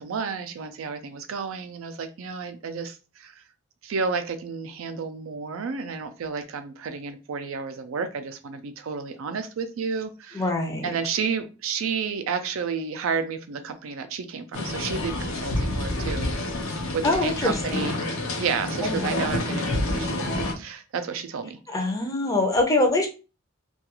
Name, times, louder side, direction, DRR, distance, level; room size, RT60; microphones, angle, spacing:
voice 1, 0.0-3.4 3.8-10.4 10.8-16.3 16.9-17.9 18.4-21.6, right 5 dB, 80° right, 9 dB, 0.4 m, -31 dB
voice 2, 10.3-10.9 17.0-18.0 18.8-19.3 21.7-23.1, left 2 dB, 15° left, 2 dB, 0.5 m, -24 dB
sound 1, 14.5-20.5, left 1 dB, 80° left, 0.6 m, -28 dB
2.3 x 2.3 x 2.9 m, 0.32 s
head